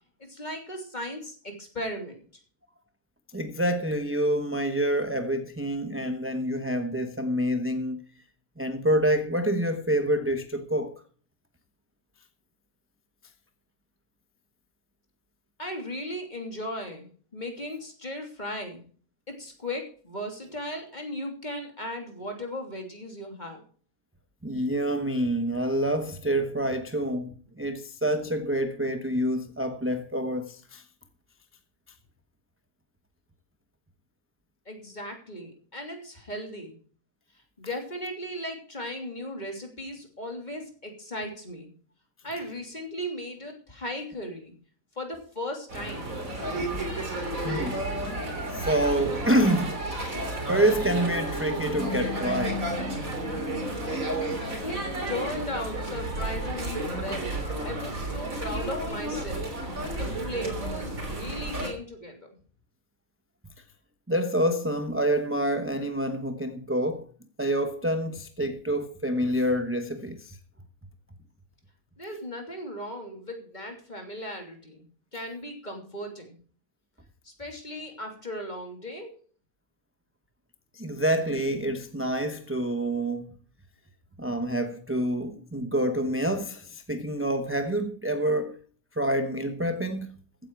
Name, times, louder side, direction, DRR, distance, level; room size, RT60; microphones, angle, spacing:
voice 1, 0.3-2.2 15.6-17.1 17.3-18.8 19.3-23.6 34.7-36.8 37.6-41.7 42.2-44.5 45.0-46.2 53.8-54.0 54.6-59.5 59.9-62.3 72.0-74.8 75.1-76.3 77.2-79.2, left 1 dB, 30° left, 3.2 m, -37 dB
voice 2, 3.3-8.0 8.6-10.9 24.4-30.8 47.4-48.0 48.5-49.8 50.5-52.7 64.1-67.1 67.4-70.4 80.7-83.3 84.2-88.6 89.0-90.1, right 1 dB, 10° right, 0.8 m, -27 dB
sound 1, 45.7-61.7, right 1 dB, 65° right, 3.9 m, -32 dB
15.5 x 9.3 x 4.7 m
omnidirectional pair, 1.5 m